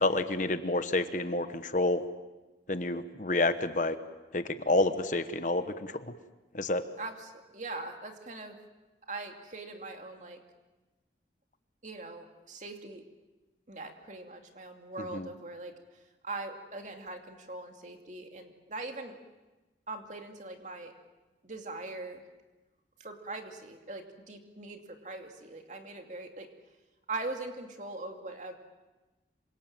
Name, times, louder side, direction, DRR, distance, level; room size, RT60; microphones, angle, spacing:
voice 1, 0.0-2.0 2.7-4.0 4.3-6.1 6.5-6.8 15.0-15.3, left 2 dB, 45° left, 10 dB, 1.1 m, -29 dB
voice 2, 7.0-8.6 9.1-10.4 11.8-13.0 13.7-15.7 16.2-19.2 19.9-20.9 21.4-22.2 23.0-26.5 27.1-28.6, right 2 dB, 40° right, 4 dB, 2.6 m, -41 dB
26.5 x 25.5 x 7.6 m, 1.1 s
head